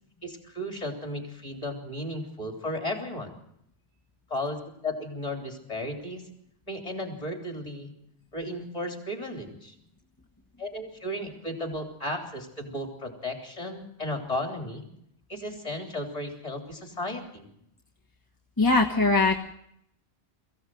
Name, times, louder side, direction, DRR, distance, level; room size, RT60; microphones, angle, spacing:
voice 1, 0.2-3.3 4.3-6.2 6.7-7.9 8.3-9.7 10.6-14.8 15.3-17.5, left 1 dB, 35° left, 3 dB, 3.6 m, -34 dB
voice 2, 18.6-19.4, left 3 dB, 20° left, -1 dB, 1.4 m, -21 dB
22.5 x 15.5 x 7.8 m, 0.73 s
omnidirectional pair, 1.1 m